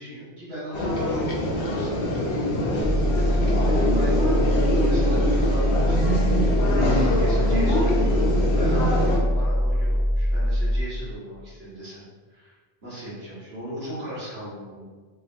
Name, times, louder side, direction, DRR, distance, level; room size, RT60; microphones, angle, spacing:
voice 1, 0.0-2.4 3.2-6.1 7.0-12.0 12.3-12.5 12.8-14.8, right 1 dB, 70° right, -8 dB, 1.5 m, -36 dB
sound 1, 0.7-9.2, left 1 dB, 90° left, 0.9 m, -24 dB
sound 2, 2.8-10.8, equal, 15° right, 0.5 m, -22 dB
3.4 x 2.2 x 2.6 m, 1.4 s
omnidirectional pair, 1.1 m